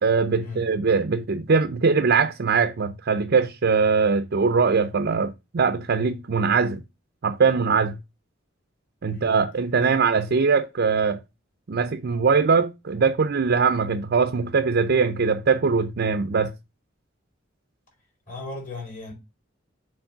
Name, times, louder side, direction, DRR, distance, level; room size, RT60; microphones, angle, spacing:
voice 1, 0.0-6.8 7.2-8.0 9.0-11.2 11.7-16.5, right 5 dB, 55° right, 0.5 m, -21 dB
voice 2, 18.3-19.1, left 3 dB, 45° left, 4.1 m, -37 dB
7.1 x 3.2 x 5.4 m
head